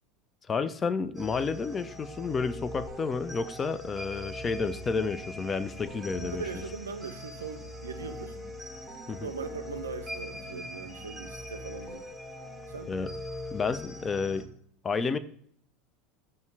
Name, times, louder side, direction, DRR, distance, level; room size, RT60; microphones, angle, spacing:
voice 1, 0.5-6.4 9.1-9.3 12.9-13.1 13.5-14.5 14.8-15.2, left 5 dB, 25° left, 0.3 m, -30 dB
sound 1, 1.2-14.5, left 1 dB, 10° right, 0.8 m, -41 dB
Growling, 4.8-12.1, left 4 dB, 65° left, 0.8 m, -53 dB
voice 2, 6.2-8.4 9.2-12.1 12.7-13.0, right 5 dB, 80° right, 0.4 m, -40 dB
5.4 x 2.1 x 4.7 m
figure-of-eight pair, 75°, 0 cm